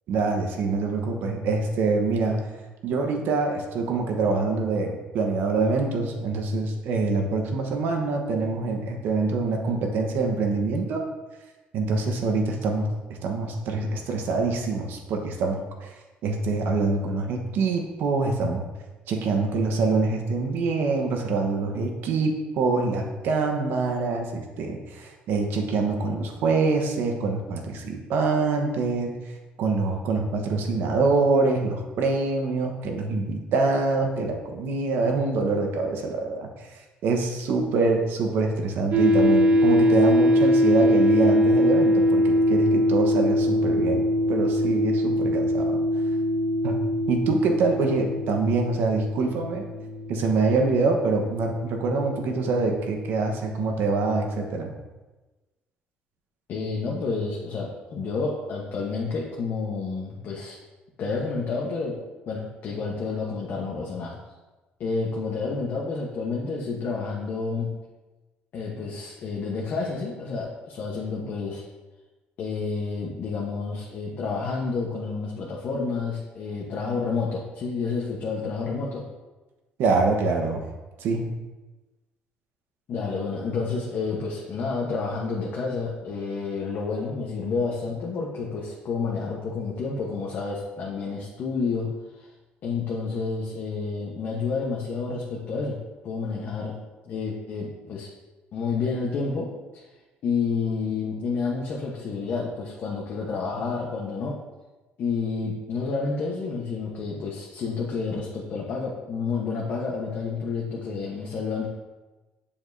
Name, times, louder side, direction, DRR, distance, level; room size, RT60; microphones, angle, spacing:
voice 1, 0.1-2.4 2.8-11.0 11.7-12.9 13.2-15.9 16.2-18.6 19.1-29.1 29.6-36.7 37.0-45.8 46.6-46.8 47.1-49.6 50.1-54.7 79.8-80.6 81.0-81.3, right 3 dB, 70° right, 3 dB, 1.1 m, -25 dB
sound 1, 38.9-54.1, left 1 dB, 45° right, 0.7 m, -23 dB
voice 2, 56.5-60.6 61.0-62.0 62.3-64.2 64.8-67.7 68.5-71.6 72.4-79.1 82.9-92.3 92.6-96.8 97.1-98.1 98.5-99.8 100.2-104.4 105.0-111.7, left 4 dB, 55° left, -3 dB, 1.1 m, -30 dB
7.1 x 7.0 x 2.7 m, 1.2 s
cardioid pair, 110°, 4 cm